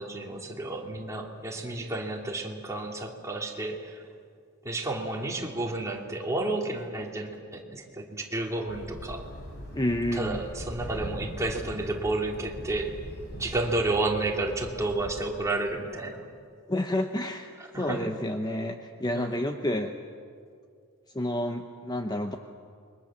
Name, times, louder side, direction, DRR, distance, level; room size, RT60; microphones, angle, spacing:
voice 1, 0.0-4.0 4.6-9.2 10.1-12.9 13.3-16.3 17.7-18.1 19.1-19.3, right 2 dB, 15° right, 0 dB, 3.0 m, -31 dB
sound 1, 8.7-15.3, equal, 50° left, 5.2 m, -41 dB
voice 2, 9.7-10.4 16.7-19.9 21.1-22.4, left 1 dB, 20° left, 5 dB, 0.9 m, -29 dB
28.5 x 23.0 x 7.4 m, 2.2 s
head